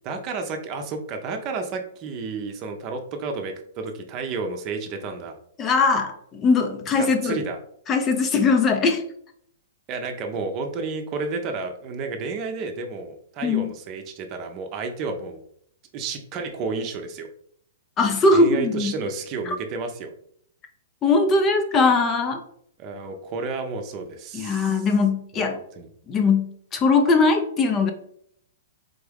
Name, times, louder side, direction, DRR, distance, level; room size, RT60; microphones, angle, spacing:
voice 1, 0.0-5.4 6.9-7.6 9.9-15.4 15.9-17.3 18.3-20.1 22.8-24.9 25.3-25.9, right 4 dB, 35° right, 5 dB, 0.7 m, -31 dB
voice 2, 5.6-7.4 7.9-9.0 13.4-13.7 18.0-18.9 19.5-19.6 21.0-22.4 24.3-25.6 26.1-27.9, left 3 dB, 25° left, 6 dB, 0.6 m, -20 dB
3.8 x 3.5 x 3.5 m, 0.66 s
hypercardioid pair, 120°, 0 cm